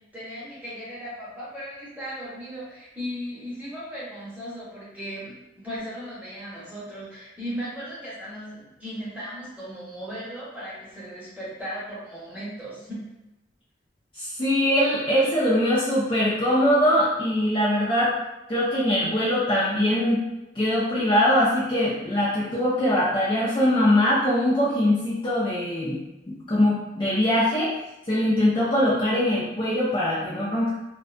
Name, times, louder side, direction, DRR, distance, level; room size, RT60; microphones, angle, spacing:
voice 1, 0.1-13.0, equal, 10° right, -9 dB, 0.9 m, -37 dB
voice 2, 14.2-18.2 18.5-20.2 20.6-26.0 26.5-27.7 28.1-30.7, left 1 dB, 25° left, -8 dB, 0.4 m, -22 dB
2.5 x 2.1 x 2.5 m, 0.95 s
head